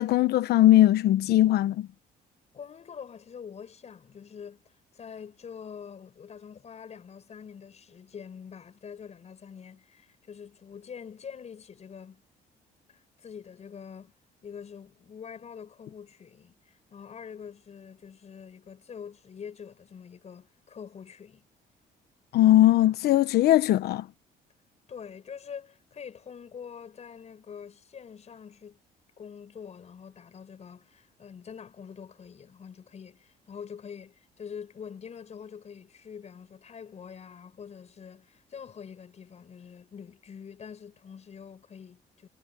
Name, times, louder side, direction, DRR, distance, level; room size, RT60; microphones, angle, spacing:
voice 1, 0.0-1.9 22.3-24.1, left 14 dB, 70° left, 1.2 m, -20 dB
voice 2, 2.5-12.2 12.9-14.1 14.4-21.5 24.9-28.8 29.2-42.3, left 7 dB, 40° left, 7.2 m, -45 dB
cardioid pair, 110°, 17 cm